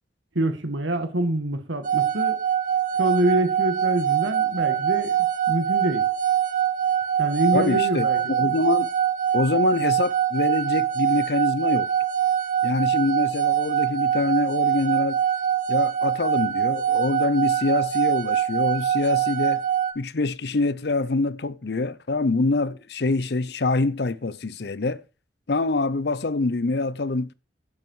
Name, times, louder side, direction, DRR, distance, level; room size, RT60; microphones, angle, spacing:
voice 1, 0.4-2.4 3.0-5.2 5.5-6.1 7.2-8.5, right 1 dB, 80° right, 2.0 m, -26 dB
sound 1, 1.8-19.9, right 9 dB, 45° right, 1.4 m, -23 dB
voice 2, 7.5-8.9 9.3-11.9 12.6-15.2 15.7-19.6 20.0-25.0 25.5-27.3, left 3 dB, 60° left, 0.6 m, -25 dB
11.0 x 7.7 x 4.8 m
head